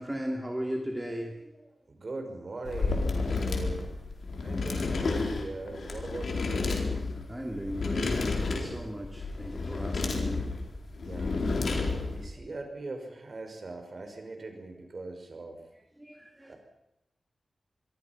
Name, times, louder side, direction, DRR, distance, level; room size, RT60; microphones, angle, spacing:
voice 1, 0.0-1.7 7.2-10.5 16.0-16.5, equal, 10° right, 2 dB, 2.5 m, -37 dB
voice 2, 1.9-3.9 4.4-6.8 10.9-11.5 12.0-15.6 16.5-16.6, right 3 dB, 40° right, 5 dB, 5.3 m, -41 dB
sound 1, 2.6-12.3, left 3 dB, 65° left, 4.4 m, -31 dB
26.5 x 22.0 x 5.9 m, 0.89 s
wide cardioid pair, 155°, 0 cm